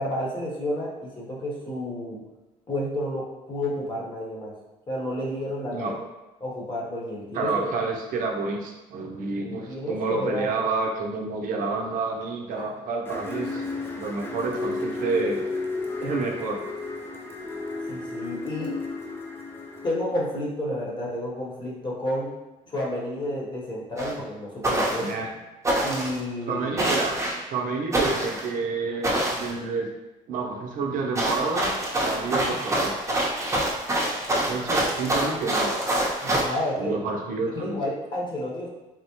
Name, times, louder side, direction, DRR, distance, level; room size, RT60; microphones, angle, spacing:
voice 1, 0.0-2.2 2.7-4.5 4.9-5.9 6.4-7.7 9.4-10.5 12.5-12.7 17.9-18.8 19.8-22.3 22.7-25.1 25.8-26.9 36.2-36.9 37.6-38.7, left 1 dB, 30° left, -4 dB, 1.0 m, -31 dB
voice 2, 7.3-13.6 13.9-15.4 16.0-16.6 25.0-25.3 26.5-27.2 27.5-29.9 30.3-31.8 32.0-32.9 34.5-35.8 36.8-37.8, right 3 dB, 70° right, 1 dB, 0.5 m, -29 dB
sound 1, 13.1-19.9, left 3 dB, 15° left, 0.5 m, -33 dB
sound 2, 24.0-24.1 24.6-25.1 25.6-26.2 26.8-27.4 27.9-28.5 29.0-29.5 31.2-36.4, right 1 dB, 20° right, 0.7 m, -25 dB
3.5 x 2.0 x 2.9 m, 1.0 s
cardioid pair, 95°, 14 cm